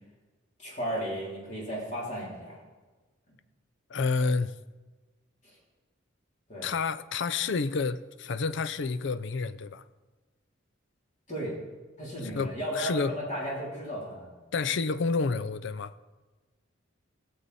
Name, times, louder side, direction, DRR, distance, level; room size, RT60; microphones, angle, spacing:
voice 1, 0.6-2.6 5.4-5.6 6.5-6.7 11.3-11.6 12.0-14.3, equal, 40° left, 3.4 m, -34 dB
voice 2, 3.9-4.5 6.6-9.8 12.2-13.2 14.5-16.0, left 4 dB, 65° left, 0.5 m, -29 dB
19.5 x 7.3 x 4.1 m
head